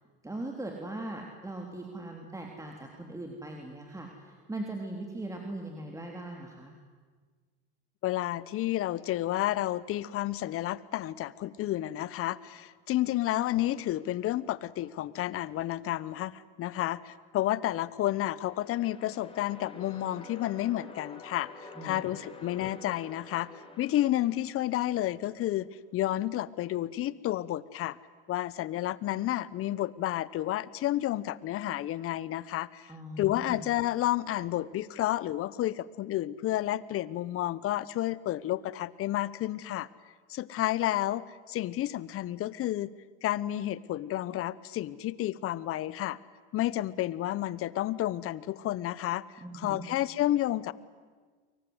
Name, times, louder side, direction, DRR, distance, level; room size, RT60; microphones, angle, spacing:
voice 1, 0.2-6.7 21.8-22.0 32.9-33.6 49.4-49.9, right 1 dB, 10° right, 1 dB, 3.7 m, -40 dB
voice 2, 8.0-23.5 23.8-28.0 28.3-39.9 40.3-42.9 43.2-46.2 46.5-50.7, left 14 dB, 50° left, 19 dB, 1.1 m, -31 dB
sound 1, 18.3-25.4, left 3 dB, 20° left, 4.9 m, -49 dB
28.5 x 23.5 x 8.1 m, 1.5 s
supercardioid pair, 95°, 29 cm